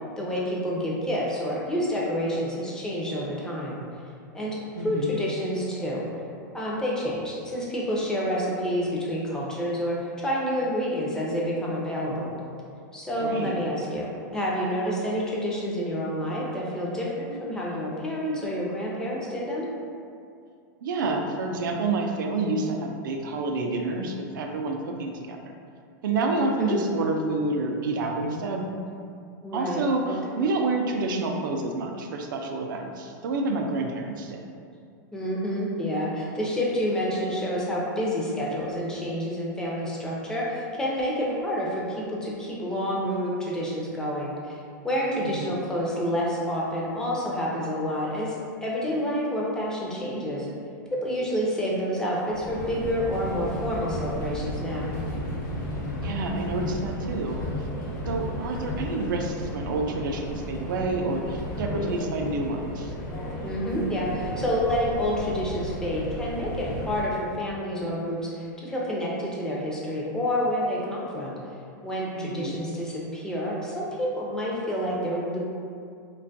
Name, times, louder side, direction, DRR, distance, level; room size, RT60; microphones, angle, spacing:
voice 1, 0.2-3.8 4.3-4.6 4.8-6.0 6.5-12.3 12.9-14.1 14.3-19.7 26.4-26.8 29.4-29.8 30.1-30.2 35.1-44.6 44.8-50.5 51.0-54.9 63.4-71.4 71.8-75.4, equal, 5° left, -5 dB, 0.4 m, -28 dB
voice 2, 4.8-5.1 13.2-13.6 20.8-25.5 26.0-28.7 29.5-34.5 45.2-45.5 56.0-57.4 58.1-62.9 72.2-72.5, right 3 dB, 85° right, 3 dB, 0.4 m, -28 dB
Subway metro underground, 52.3-67.1, left 1 dB, 65° left, 0.8 m, -33 dB
2.5 x 2.2 x 2.5 m, 2.4 s
supercardioid pair, 140°, 11 cm